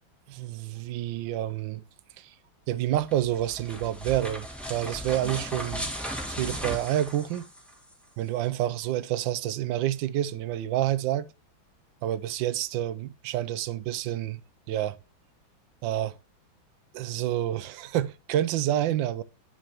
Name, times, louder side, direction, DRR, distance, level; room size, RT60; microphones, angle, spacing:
voice 1, 0.3-1.8 2.2-2.3 2.7-5.9 6.3-7.5 8.2-11.3 12.0-14.4 14.7-15.0 15.8-16.2 16.9-19.2, right 12 dB, 75° right, 1.3 m, -28 dB
sound 1, 3.0-7.9, equal, ahead, 1.3 m, -36 dB
9.2 x 6.5 x 2.9 m
omnidirectional pair, 2.2 m